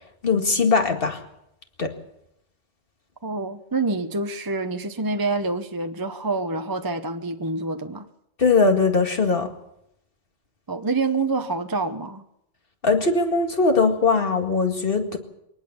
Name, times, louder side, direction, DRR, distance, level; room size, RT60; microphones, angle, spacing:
voice 1, 0.2-1.2 1.8-1.9 8.4-9.5 12.8-15.2, left 4 dB, 50° left, 2.3 m, -20 dB
voice 2, 3.2-8.1 10.7-12.2, right 3 dB, 20° right, 0.7 m, -27 dB
22.5 x 19.0 x 7.1 m
omnidirectional pair, 1.3 m